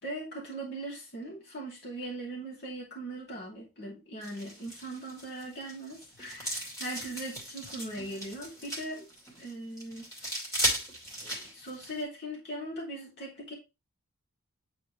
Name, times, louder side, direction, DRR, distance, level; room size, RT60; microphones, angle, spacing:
voice 1, 0.0-9.1 9.4-10.4 11.2-13.5, right 1 dB, 50° left, -3 dB, 2.5 m, -40 dB
sound 1, 4.2-12.0, equal, 15° left, 2.3 m, -37 dB
9.1 x 4.2 x 3.1 m, 0.26 s
head